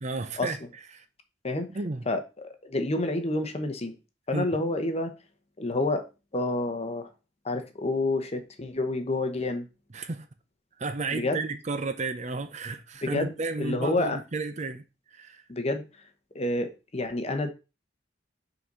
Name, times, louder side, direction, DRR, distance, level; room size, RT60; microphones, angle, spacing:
voice 1, 0.0-0.6 0.9-1.0 1.7-2.1 4.3-4.5 9.9-10.3 10.8-14.8 15.1-15.4, right 3 dB, 35° right, 0.6 m, -32 dB
voice 2, 2.1-3.9 4.3-5.1 5.6-6.1 6.3-7.1 7.4-9.7 11.1-11.4 13.0-14.2 15.5-15.8 16.3-17.5, left 2 dB, 35° left, 0.9 m, -29 dB
5.7 x 4.0 x 5.3 m
head